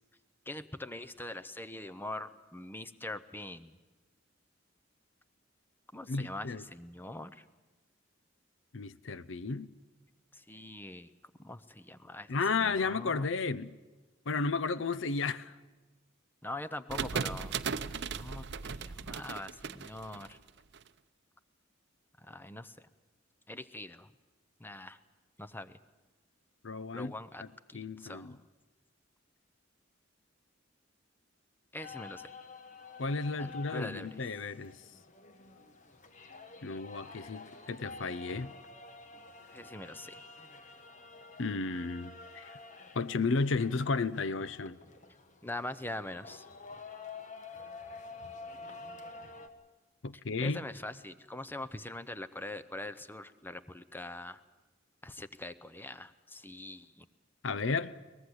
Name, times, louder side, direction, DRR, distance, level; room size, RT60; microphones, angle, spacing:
voice 1, 0.5-3.8 5.9-7.4 10.3-11.1 11.4-13.3 16.4-17.6 18.1-20.4 22.2-22.9 23.5-24.1 24.6-25.0 25.4-25.8 26.9-27.4 27.7-28.4 31.7-32.3 33.4-34.2 39.5-40.3 45.4-46.5 50.4-54.4 55.0-57.1, left 1 dB, 10° left, 0.6 m, -43 dB
voice 2, 6.1-6.6 8.7-9.7 12.3-13.8 14.3-15.5 26.6-27.1 27.4-27.5 27.7-28.4 33.0-34.8 36.6-38.5 41.4-42.6 42.9-44.8 50.0-50.6 57.4-58.0, left 4 dB, 65° left, 0.6 m, -33 dB
sound 1, 16.9-20.8, right 6 dB, 60° right, 0.7 m, -37 dB
sound 2, 31.8-49.5, left 4 dB, 40° left, 1.3 m, -49 dB
23.0 x 19.0 x 7.9 m
head